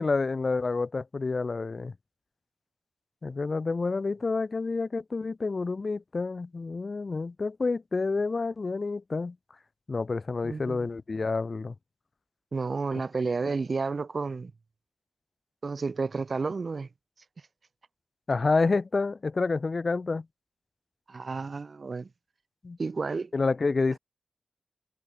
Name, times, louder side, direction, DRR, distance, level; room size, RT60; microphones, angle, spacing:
voice 1, 0.0-1.9 3.2-9.3 9.9-11.7 13.4-13.5 18.3-20.2 22.6-22.8 23.3-24.0, left 3 dB, 45° left, 4.6 m, -28 dB
voice 2, 10.4-10.8 12.5-14.5 15.6-16.9 21.1-22.1 22.8-23.3, right 4 dB, 50° right, 5.7 m, -31 dB
wide cardioid pair, 85°, 0 cm